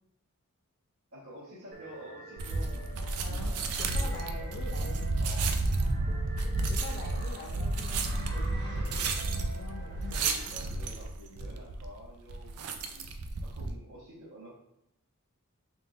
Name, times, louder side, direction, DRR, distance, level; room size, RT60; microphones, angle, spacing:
voice 1, 1.1-4.9 5.2-5.6 6.0-6.3 10.2-13.1 13.4-14.5, equal, 70° right, -9 dB, 1.3 m, -50 dB
sound 1, 1.7-10.5, right 1 dB, 35° right, 0.6 m, -49 dB
sound 2, 2.4-13.7, right 2 dB, 90° right, 0.4 m, -32 dB
voice 2, 3.1-3.5 3.8-5.1 6.2-8.8 9.3-10.4, left 2 dB, 50° left, -1 dB, 0.5 m, -45 dB
sound 3, 3.3-10.9, equal, 50° right, 1.4 m, -52 dB
3.7 x 3.7 x 2.5 m, 0.80 s
head